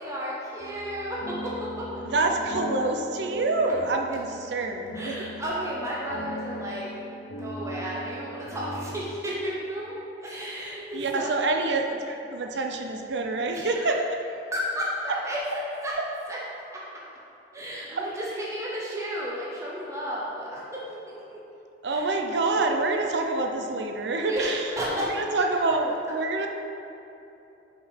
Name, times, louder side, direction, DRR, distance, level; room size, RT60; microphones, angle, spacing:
voice 1, 0.0-2.0 4.9-9.9 10.2-11.4 13.5-16.4 16.7-17.0 17.5-21.4 21.9-22.1 24.2-25.2 26.1-26.2, equal, 15° right, -6 dB, 0.9 m, -33 dB
sound 1, 0.6-9.2, equal, 60° left, 0.8 m, -39 dB
voice 2, 2.0-5.3 10.9-14.0 18.0-18.1 21.8-24.6 25.2-26.5, right 3 dB, 75° right, 3 dB, 0.6 m, -26 dB
6.0 x 5.2 x 5.8 m, 3.0 s
head